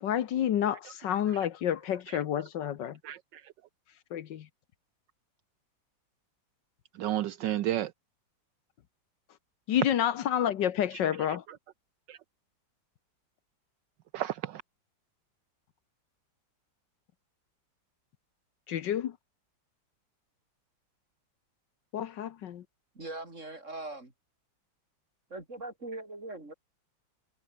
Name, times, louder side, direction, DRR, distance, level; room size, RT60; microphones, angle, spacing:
voice 1, 0.0-3.0 4.1-4.5 9.7-11.4 18.7-19.2 21.9-22.6, left 10 dB, 70° left, 1.6 m, -29 dB
voice 2, 0.8-1.4 2.1-2.2 3.0-3.5 6.9-7.9 11.2-11.6 12.1-12.2 14.1-14.6, right 13 dB, 75° right, 1.4 m, -34 dB
voice 3, 23.0-24.1 25.3-26.5, right 2 dB, 40° right, 5.4 m, -41 dB
omnidirectional pair, 2.1 m